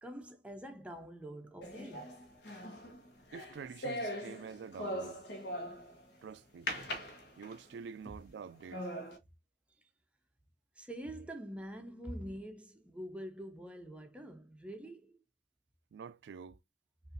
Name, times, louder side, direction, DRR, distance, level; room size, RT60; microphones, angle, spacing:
voice 1, 0.0-2.1 10.8-15.2, equal, 5° right, 0.5 m, -45 dB
sound 1, 1.6-6.0 6.7-7.8 8.3-8.4 8.7-9.2, equal, 75° left, 1.0 m, -41 dB
voice 2, 3.3-5.2 6.2-6.7 7.4-8.9 15.9-16.6, right 6 dB, 75° right, 0.3 m, -47 dB
5.3 x 2.5 x 2.5 m
head